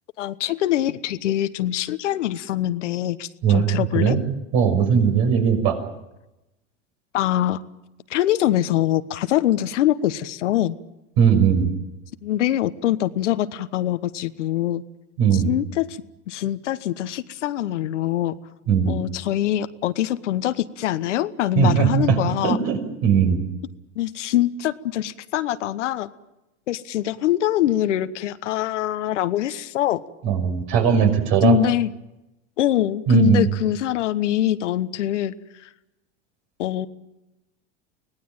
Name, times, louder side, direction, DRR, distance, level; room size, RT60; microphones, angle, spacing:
voice 1, 0.2-4.2 7.1-7.6 8.1-10.8 12.2-14.8 15.3-16.0 16.3-18.4 18.8-22.6 23.9-26.1 26.7-30.0 31.4-31.9 32.6-35.3 35.6-35.7 36.6-36.9, left 13 dB, 85° left, 13 dB, 1.2 m, -23 dB
voice 2, 4.5-5.8 11.2-11.7 15.2-15.5 18.7-19.0 21.6-22.2 22.4-23.4 30.2-31.6 33.1-33.5, right 7 dB, 60° right, 6 dB, 6.1 m, -18 dB
24.5 x 18.5 x 9.0 m, 0.95 s
hypercardioid pair, 100°, 35 cm